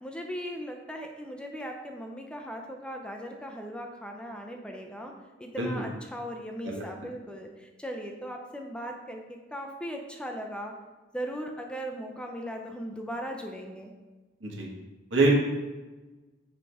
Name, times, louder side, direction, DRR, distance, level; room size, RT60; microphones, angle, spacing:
voice 1, 0.0-5.1 5.4-10.7 11.1-13.9, equal, 5° left, 2 dB, 0.5 m, -38 dB
voice 2, 5.6-5.9 6.6-6.8 14.4-14.7 15.1-15.3, right 2 dB, 80° right, -2 dB, 1.5 m, -25 dB
6.1 x 4.7 x 3.4 m, 1.2 s
head